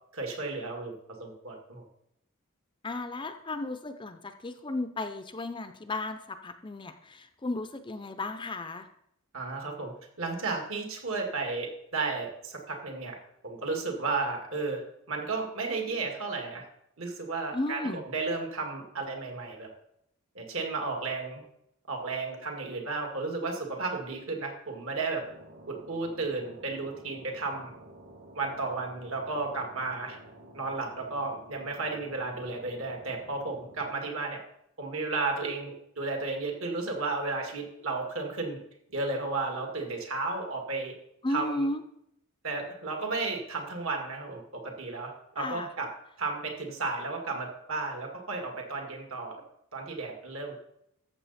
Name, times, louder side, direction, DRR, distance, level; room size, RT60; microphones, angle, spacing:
voice 1, 0.1-0.9 1.2-1.8 9.3-9.9 10.2-13.2 13.4-14.8 15.1-16.6 17.0-19.7 20.4-21.4 21.9-25.2 25.7-27.7 28.3-30.2 30.5-34.4 34.8-38.6 38.9-40.9 41.3-41.7 42.4-45.9 46.2-49.3 49.7-50.6, right 3 dB, 65° right, 2 dB, 2.2 m, -33 dB
voice 2, 2.8-8.9 17.5-18.0 41.2-41.8 45.4-45.7, left 2 dB, 20° left, 9 dB, 0.6 m, -34 dB
sound 1, 25.2-33.9, right 1 dB, 45° right, 1.7 m, -51 dB
13.5 x 6.8 x 4.2 m, 0.77 s
head